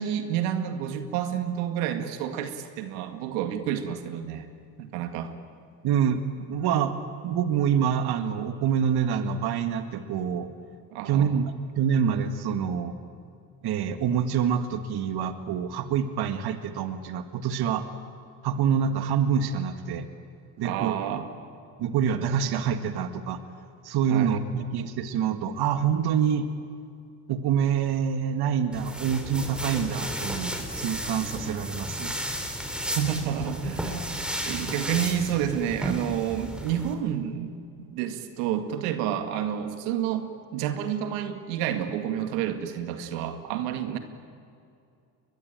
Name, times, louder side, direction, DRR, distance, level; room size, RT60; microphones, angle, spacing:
voice 1, 0.0-4.5 4.8-5.3 10.9-11.3 20.6-21.3 24.1-24.4 32.9-44.0, right 9 dB, 90° right, 7 dB, 2.2 m, -29 dB
voice 2, 5.8-6.2 6.5-7.0 7.2-10.5 11.1-11.5 11.8-13.0 13.6-17.8 18.4-20.1 20.6-21.0 21.8-23.4 23.8-26.5 27.3-32.1, right 8 dB, 55° right, 9 dB, 1.8 m, -26 dB
sound 1, 28.7-36.9, equal, ahead, 3.5 m, -33 dB
22.5 x 22.0 x 9.0 m, 2.5 s
supercardioid pair, 105°, 45 cm